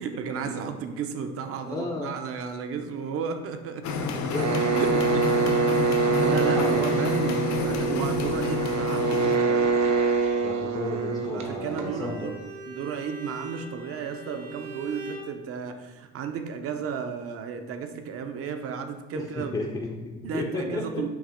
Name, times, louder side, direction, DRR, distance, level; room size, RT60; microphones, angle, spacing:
voice 1, 0.0-4.3 4.7-9.7 11.2-12.4 12.6-19.6 20.2-21.1, right 6 dB, 50° right, 7 dB, 0.6 m, -34 dB
voice 2, 1.6-2.1 4.1-4.5 6.1-6.9 10.4-12.3 19.2-21.0, left 3 dB, 15° left, -1 dB, 0.5 m, -33 dB
sound 1, 3.8-9.4, left 4 dB, 65° left, 0.7 m, -29 dB
sound 2, 4.3-12.1, right 4 dB, 65° right, 1.0 m, -25 dB
Bowed string instrument, 11.6-15.3, right 2 dB, 90° right, 1.5 m, -41 dB
7.1 x 2.9 x 5.0 m, 1.1 s
cardioid pair, 170°, 30 cm